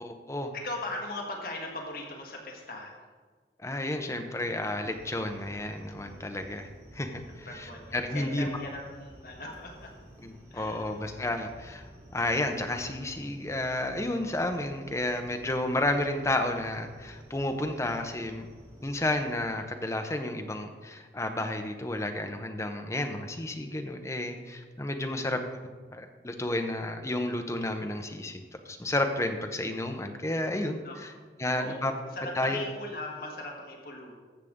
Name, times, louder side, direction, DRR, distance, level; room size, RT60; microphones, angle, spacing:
voice 1, 0.0-0.5 3.6-6.7 6.9-8.5 10.2-18.5 18.8-25.4 25.9-31.1 31.4-31.9 32.4-32.6, left 1 dB, 15° left, 5 dB, 0.7 m, -31 dB
voice 2, 0.5-3.0 7.2-9.9 10.5-11.0 25.0-25.3 30.8-31.0 31.5-34.1, left 2 dB, 55° left, 0 dB, 1.6 m, -39 dB
sound 1, 4.9-19.3, equal, 20° right, 2.1 m, -51 dB
14.5 x 6.7 x 3.7 m, 1.4 s
head